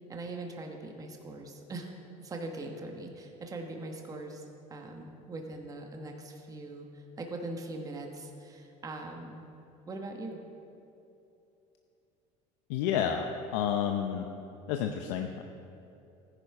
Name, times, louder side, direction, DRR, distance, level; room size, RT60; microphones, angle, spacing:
voice 1, 0.1-1.9 2.2-4.4 4.7-9.4 9.9-10.4, right 2 dB, 25° right, 2 dB, 1.3 m, -41 dB
voice 2, 12.7-14.3 14.7-15.4, left 8 dB, 85° left, 4 dB, 0.7 m, -30 dB
14.5 x 10.0 x 4.9 m, 2.8 s
supercardioid pair, 120°, 15 cm